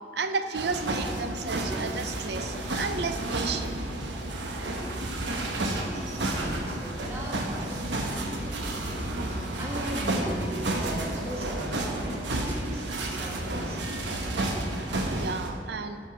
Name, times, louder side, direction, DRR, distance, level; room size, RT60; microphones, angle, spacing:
voice 1, 0.1-3.8 15.1-16.0, right 4 dB, 65° right, 8 dB, 0.6 m, -32 dB
sound 1, 0.5-15.5, right 1 dB, 85° right, 1.1 m, -31 dB
voice 2, 5.5-13.8, right 1 dB, 15° right, -4 dB, 1.6 m, -39 dB
10.5 x 5.3 x 6.1 m, 2.8 s
head